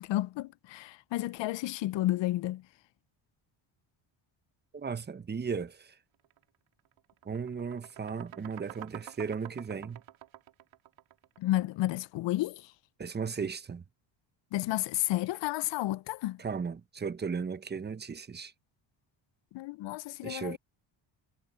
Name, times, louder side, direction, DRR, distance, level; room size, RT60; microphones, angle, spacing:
voice 1, 0.0-2.6 11.4-12.6 14.5-16.4 19.5-20.6, left 16 dB, 65° left, 0.6 m, -31 dB
voice 2, 4.7-5.9 7.2-10.0 13.0-13.8 16.4-18.5 20.2-20.6, right 5 dB, 20° right, 0.9 m, -36 dB
sound 1, 6.2-6.4 6.8-11.7, right 13 dB, 80° right, 3.2 m, -49 dB
cardioid pair, 115°, 47 cm